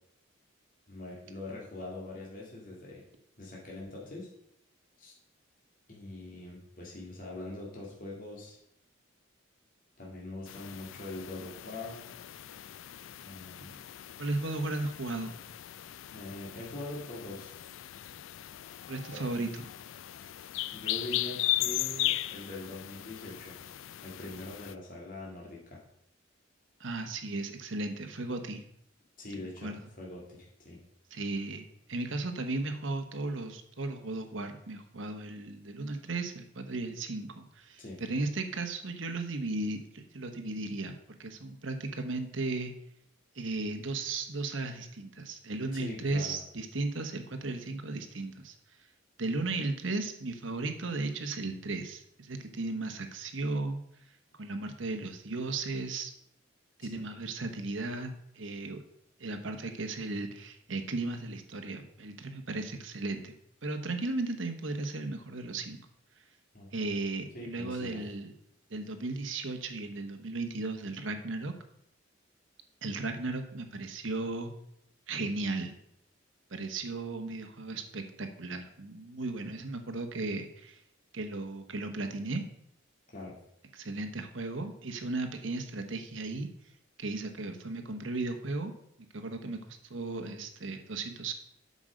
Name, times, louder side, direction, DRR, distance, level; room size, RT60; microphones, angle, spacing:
voice 1, 0.9-3.0 3.4-4.3 5.0-5.1 5.9-8.6 10.0-12.0 13.2-13.8 16.1-17.6 19.1-19.2 20.7-23.6 24.0-25.8 29.2-30.8 37.8-38.0 45.7-46.4 56.8-57.0 66.5-66.7 67.3-68.0 83.1-83.4, left 2 dB, 45° left, -3 dB, 2.3 m, -43 dB
sound 1, 10.5-24.7, left 15 dB, 75° left, 0.4 m, -37 dB
voice 2, 14.2-15.4 18.9-19.7 26.8-28.6 29.6-29.8 31.1-42.7 43.3-48.5 49.2-53.8 54.4-56.1 56.8-58.8 59.2-63.3 63.6-65.8 66.7-68.3 68.7-71.5 72.8-74.5 75.1-75.8 76.5-80.8 81.1-82.4 83.7-86.5 87.0-88.7 89.1-91.3, right 2 dB, 75° right, 6 dB, 1.1 m, -35 dB
8.2 x 6.3 x 5.2 m, 0.74 s
head